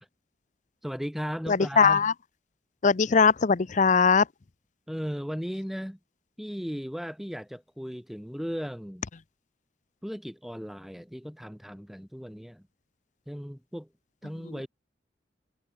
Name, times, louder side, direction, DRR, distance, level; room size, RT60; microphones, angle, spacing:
voice 1, 0.8-2.1 4.9-6.0 6.4-9.1 10.0-12.7 13.3-13.9 14.2-14.7, equal, ahead, 5.3 m, -36 dB
voice 2, 1.5-2.1 2.8-4.3, left 5 dB, 45° left, 0.6 m, -20 dB
head